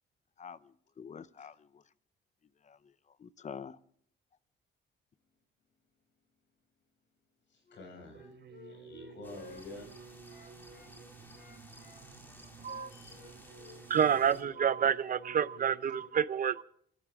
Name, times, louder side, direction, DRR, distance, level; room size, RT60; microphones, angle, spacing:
voice 1, 0.4-1.8 2.6-2.9 3.2-3.8, left 7 dB, 35° left, 0.8 m, -47 dB
voice 2, 7.5-8.3 8.6-9.9 12.9-13.2, left 2 dB, 70° left, 6.9 m, -49 dB
Wind instrument woodwind instrument, 7.7-10.9 11.3-14.7, left 5 dB, 55° left, 4.6 m, -55 dB
sound 1, 8.1-16.1, right 6 dB, 65° right, 3.7 m, -53 dB
sound 2, 9.2-14.4, equal, 10° left, 3.9 m, -56 dB
voice 3, 13.9-16.6, right 8 dB, 45° right, 0.7 m, -28 dB
27.0 x 14.5 x 3.7 m
cardioid pair, 90°, 20 cm